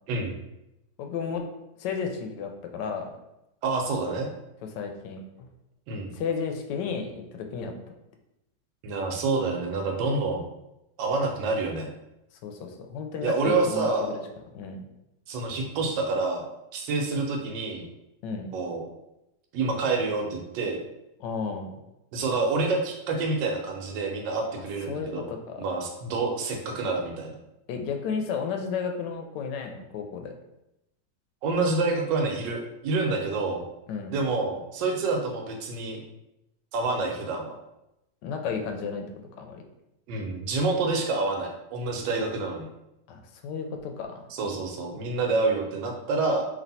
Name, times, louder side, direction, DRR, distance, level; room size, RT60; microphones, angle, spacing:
voice 1, 1.0-1.4 1.8-3.1 4.6-5.2 6.1-7.7 12.4-14.2 14.5-14.8 18.2-18.5 21.2-21.7 24.9-25.6 27.7-30.3 33.9-34.1 38.2-39.1 39.4-39.6 43.1-44.3, left 6 dB, 80° left, 5 dB, 1.2 m, -33 dB
voice 2, 3.6-4.3 5.9-6.1 8.8-10.4 11.0-11.9 13.2-14.2 15.3-16.4 16.7-17.8 18.5-18.8 19.5-20.8 22.1-25.3 25.6-27.4 31.4-33.6 34.1-36.0 36.7-37.5 40.1-42.6 44.3-46.4, right 3 dB, 85° right, 2 dB, 1.4 m, -27 dB
3.2 x 2.7 x 4.0 m, 0.89 s
omnidirectional pair, 1.9 m